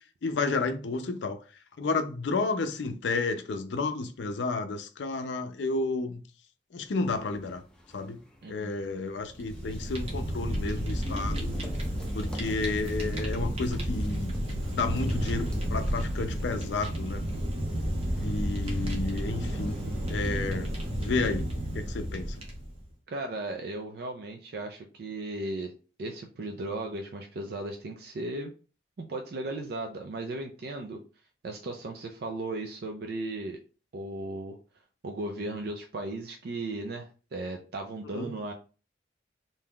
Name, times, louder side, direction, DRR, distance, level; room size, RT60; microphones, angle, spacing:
voice 1, 0.2-1.4 1.8-6.2 6.7-7.6 7.9-8.2 8.5-11.5 12.1-14.3 14.7-17.2 18.2-19.8 20.1-20.7 21.0-21.5 21.7-22.4 38.0-38.3, left 3 dB, 75° left, 0.5 m, -31 dB
sound 1, 6.9-20.1, equal, 5° left, 0.5 m, -47 dB
voice 2, 8.4-8.7 23.1-25.7 26.0-28.5 29.0-31.0 31.4-33.6 33.9-34.6 35.0-38.5, right 2 dB, 60° right, 0.4 m, -36 dB
Fire, 9.2-22.8, equal, 35° right, 0.8 m, -31 dB
2.7 x 2.3 x 3.5 m
head